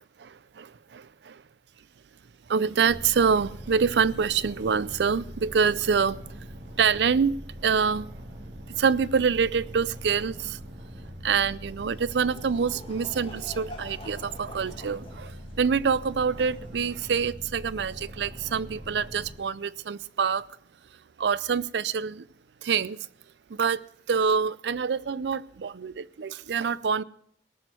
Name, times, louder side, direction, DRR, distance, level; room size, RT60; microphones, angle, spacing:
voice 1, 0.2-1.4 2.5-6.2 6.7-7.4 7.6-8.1 8.7-10.6 11.2-20.4 21.2-22.3 22.6-23.0 23.5-27.0, right 6 dB, 75° right, 0.5 m, -26 dB
sound 1, 2.9-19.3, equal, 45° right, 2.9 m, -42 dB
Laughter / Crowd, 11.8-17.5, left 1 dB, 30° left, 1.5 m, -48 dB
18.5 x 6.2 x 7.9 m
head